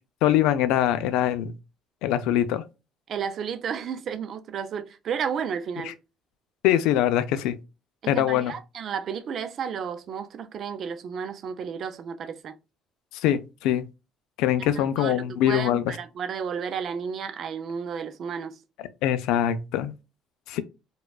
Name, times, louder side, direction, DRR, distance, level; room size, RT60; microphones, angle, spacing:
voice 1, 0.2-1.5 2.0-2.6 5.8-5.9 6.6-7.6 8.1-8.5 13.1-13.9 14.4-15.9 19.0-19.9 20.5-20.6, left 11 dB, 85° left, 0.4 m, -23 dB
voice 2, 3.1-5.9 8.1-12.6 15.0-18.6, right 7 dB, 40° right, 0.4 m, -32 dB
4.8 x 2.3 x 2.3 m
cardioid pair, 165°, 0 cm